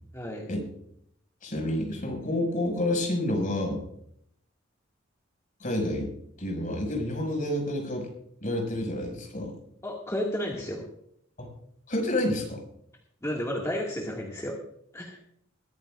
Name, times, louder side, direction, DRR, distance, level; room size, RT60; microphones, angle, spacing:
voice 1, 0.1-0.5 9.8-10.8 13.2-14.6 14.9-15.2, left 1 dB, 15° left, -3 dB, 2.1 m, -32 dB
voice 2, 1.4-3.8 5.6-6.1 6.4-8.1 8.4-9.5 11.4-11.5 11.9-12.6, left 1 dB, 40° left, 1 dB, 6.0 m, -29 dB
21.5 x 15.0 x 2.5 m, 0.70 s
head